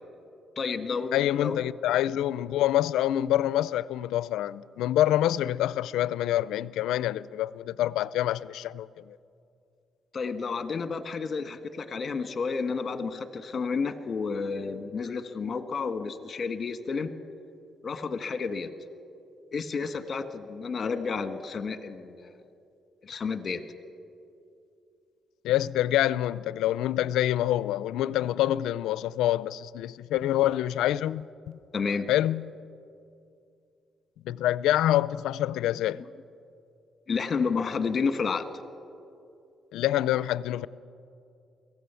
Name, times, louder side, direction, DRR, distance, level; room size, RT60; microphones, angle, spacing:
voice 1, 0.5-1.6 10.1-17.1 17.8-18.7 19.5-22.3 23.0-23.6 31.7-32.1 37.1-38.5, left 5 dB, 40° left, 1.5 m, -31 dB
voice 2, 1.1-9.2 25.4-31.6 32.1-32.6 34.2-36.0 39.7-40.7, left 13 dB, 90° left, 0.4 m, -26 dB
23.5 x 16.5 x 7.0 m
cardioid pair, 90°, 0 cm